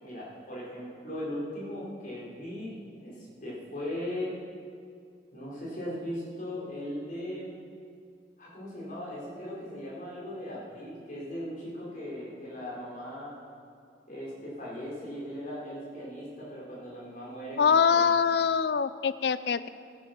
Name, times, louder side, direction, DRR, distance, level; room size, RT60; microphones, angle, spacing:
voice 1, 0.0-2.7 3.0-4.3 5.3-7.5 8.4-13.3 14.1-18.1, left 1 dB, 45° left, -6 dB, 4.5 m, -38 dB
voice 2, 17.6-19.7, left 6 dB, 65° left, 15 dB, 0.4 m, -24 dB
14.5 x 10.5 x 6.0 m, 2.2 s
head